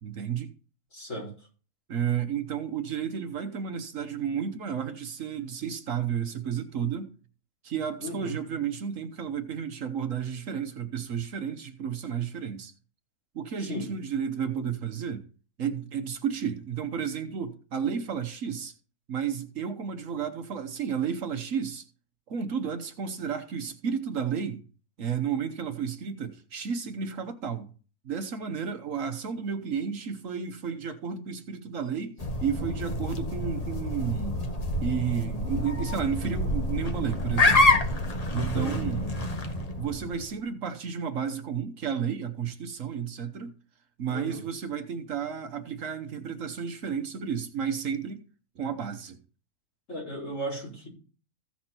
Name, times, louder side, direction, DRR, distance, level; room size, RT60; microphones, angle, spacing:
voice 1, 0.0-0.5 1.9-7.1 7.6-12.7 13.3-15.3 15.6-18.7 19.1-21.8 22.3-24.6 25.0-27.7 28.0-34.5 34.8-37.8 38.3-39.2 39.8-43.6 44.0-48.2 48.6-49.2, right 7 dB, 65° right, 1.3 m, -32 dB
voice 2, 0.9-1.3 8.0-8.4 13.6-13.9 38.3-38.8 44.1-44.4 49.9-50.9, equal, 55° left, 5.0 m, -35 dB
Swan Signet Honk and Rustle, 32.2-40.2, left 2 dB, 30° left, 1.1 m, -27 dB
15.5 x 5.9 x 4.4 m
omnidirectional pair, 1.5 m